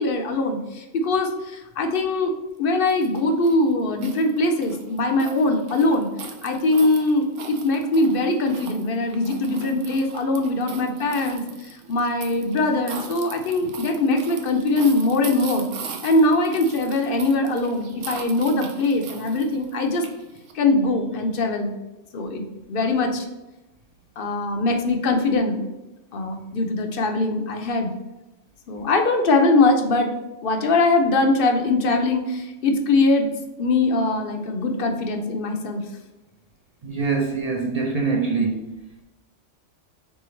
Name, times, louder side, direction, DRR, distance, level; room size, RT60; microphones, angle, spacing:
voice 1, 0.0-2.3 2.6-6.1 6.4-15.7 16.0-20.0 20.5-21.7 22.1-23.3 24.2-25.6 26.1-27.9 28.7-30.1 30.4-33.3 33.6-35.8, left 2 dB, 55° left, 5 dB, 0.7 m, -22 dB
sound 1, 2.9-20.5, right 6 dB, 90° right, 1.0 m, -40 dB
voice 2, 36.8-38.6, right 4 dB, 45° right, 0 dB, 0.5 m, -24 dB
4.5 x 3.6 x 3.1 m, 1.0 s
omnidirectional pair, 1.3 m